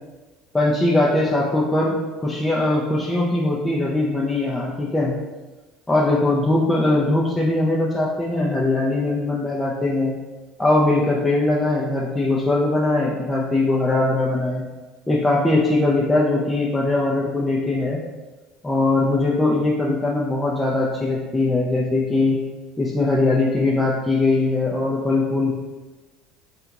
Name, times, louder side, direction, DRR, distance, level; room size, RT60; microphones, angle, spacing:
voice 1, 0.5-1.9 2.2-5.2 5.9-10.1 10.6-14.6 15.1-18.0 18.6-22.4 22.8-25.5, left 2 dB, 15° left, -4 dB, 0.6 m, -20 dB
3.4 x 2.9 x 3.7 m, 1.2 s
supercardioid pair, 85°, 0 cm